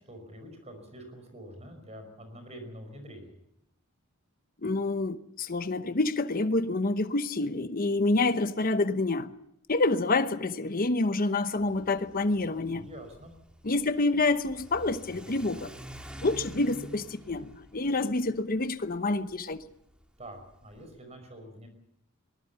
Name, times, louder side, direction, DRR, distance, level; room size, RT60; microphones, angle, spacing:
voice 1, 0.0-3.4 12.7-13.3 20.2-21.7, equal, 30° right, 5.3 m, -46 dB
voice 2, 4.6-9.3 9.7-12.9 13.6-15.7 16.2-19.6, left 2 dB, 45° left, 0.9 m, -27 dB
Car / Accelerating revving vroom, 11.6-21.0, equal, 5° right, 2.1 m, -48 dB
23.0 x 19.0 x 7.0 m
head